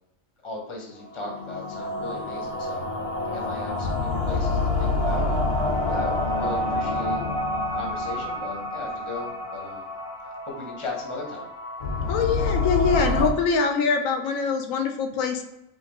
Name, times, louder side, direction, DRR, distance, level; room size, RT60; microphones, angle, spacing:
voice 1, 0.4-2.9 3.2-5.5 5.9-7.2 7.7-9.9 10.4-11.5, left 3 dB, 25° left, 0 dB, 0.9 m, -37 dB
sound 1, 1.1-13.3, left 2 dB, 45° left, 0.5 m, -27 dB
voice 2, 12.1-15.4, left 5 dB, 85° left, 6 dB, 1.0 m, -24 dB
5.1 x 2.6 x 2.9 m, 0.89 s
omnidirectional pair, 1.4 m